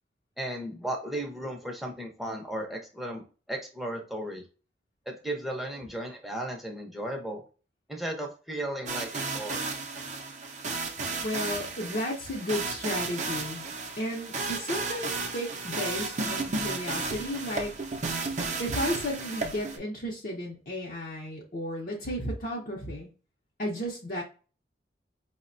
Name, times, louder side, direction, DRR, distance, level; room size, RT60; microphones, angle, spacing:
voice 1, 0.4-4.4 5.1-7.4 7.9-9.6, right 1 dB, ahead, 0 dB, 0.6 m, -35 dB
sound 1, 8.9-19.8, right 3 dB, 40° right, 0.6 m, -33 dB
voice 2, 11.2-13.6 14.0-17.8 18.6-23.1 23.6-24.2, equal, 50° left, -2 dB, 0.7 m, -33 dB
4.9 x 2.1 x 2.5 m, 0.35 s
head